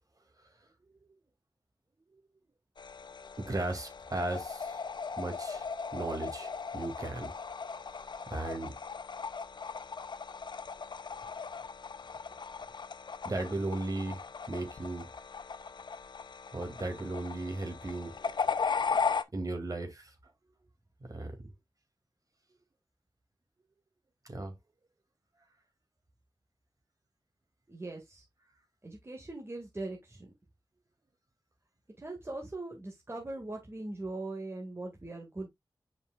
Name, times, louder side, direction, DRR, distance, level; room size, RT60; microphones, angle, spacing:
sound 1, 2.8-19.2, left 5 dB, 70° left, 0.6 m, -37 dB
voice 1, 3.4-4.8 5.2-5.7 5.9-7.3 7.9-8.8 13.2-14.2 14.5-15.1 16.5-18.2 19.3-20.1 21.1-21.4 24.2-24.5, right 2 dB, 45° right, 2.5 m, -36 dB
voice 2, 27.7-28.2 28.8-30.3 32.0-35.5, right 2 dB, 30° right, 2.0 m, -40 dB
7.7 x 5.3 x 2.4 m
wide cardioid pair, 70°, 8 cm